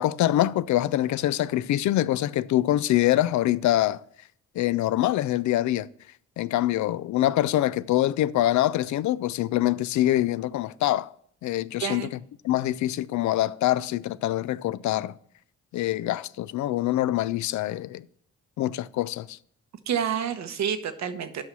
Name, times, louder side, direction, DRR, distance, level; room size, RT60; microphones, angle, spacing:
voice 1, 0.0-4.0 4.6-5.9 6.4-11.1 11.4-12.1 12.4-15.2 15.7-18.0 18.6-19.4, left 14 dB, 70° left, 0.5 m, -24 dB
voice 2, 19.9-21.4, right 8 dB, 65° right, 1.0 m, -28 dB
8.5 x 5.6 x 6.2 m
cardioid pair, 90°, 30 cm